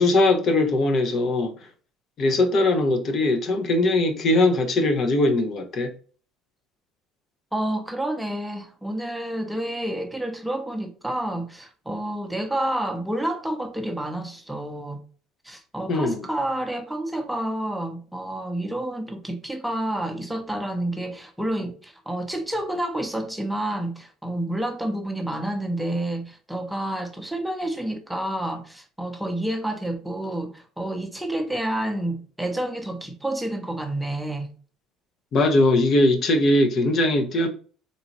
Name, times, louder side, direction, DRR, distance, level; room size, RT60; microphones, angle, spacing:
voice 1, 0.0-1.6 2.2-5.9 15.9-16.2 35.3-37.5, left 2 dB, 50° left, 0.6 m, -20 dB
voice 2, 7.5-15.0 15.4-34.5, right 1 dB, 5° right, 0.7 m, -29 dB
3.9 x 2.4 x 2.9 m
supercardioid pair, 95°, 0 cm